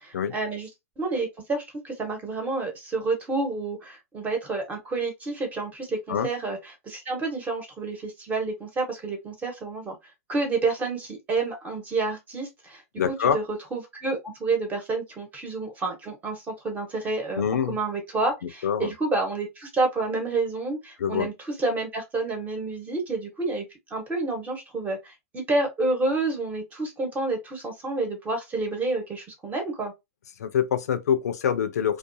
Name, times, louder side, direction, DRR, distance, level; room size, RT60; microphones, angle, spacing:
voice 1, 0.3-0.7 1.0-6.6 6.8-9.9 10.3-12.8 13.1-21.3 21.6-23.6 23.9-29.9, right 3 dB, 20° right, 1.0 m, -29 dB
voice 2, 13.0-13.4 17.4-17.8 18.6-18.9 21.0-21.3 30.4-32.0, left 8 dB, 80° left, 0.5 m, -25 dB
2.4 x 2.3 x 2.6 m
hypercardioid pair, 125°, 9 cm